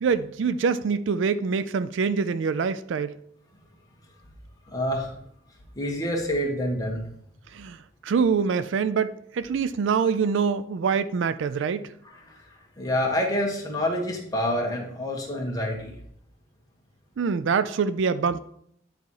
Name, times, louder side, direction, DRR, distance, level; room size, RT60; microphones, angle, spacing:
voice 1, 0.0-3.2 7.5-11.9 17.2-18.4, right 5 dB, 65° right, 0.4 m, -25 dB
voice 2, 4.7-5.1 5.7-7.0 12.3-12.4 12.8-15.9, left 1 dB, 20° left, 1.6 m, -27 dB
9.2 x 4.2 x 4.7 m
head